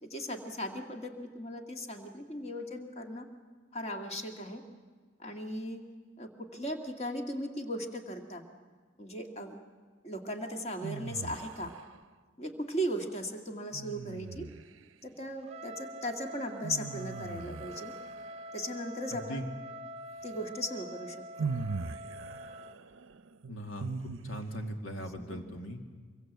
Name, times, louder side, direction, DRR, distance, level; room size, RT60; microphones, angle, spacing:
voice 1, 0.0-3.3 3.7-4.6 5.2-5.8 6.2-8.4 9.0-9.6 10.0-11.7 12.4-14.5 15.0-17.9 18.5-19.5 20.2-21.5 25.2-25.4, equal, 35° left, 4 dB, 2.0 m, -37 dB
sound 1, 10.8-12.0 13.7-14.9 16.6-18.6 20.4-20.5 21.4-24.7, right 4 dB, 75° right, 0.6 m, -40 dB
Trumpet, 15.4-22.8, right 1 dB, 30° right, 0.6 m, -45 dB
voice 2, 23.5-23.9 24.2-25.8, equal, 85° left, 4 dB, 2.4 m, -39 dB
25.0 x 22.5 x 8.1 m, 1.5 s
head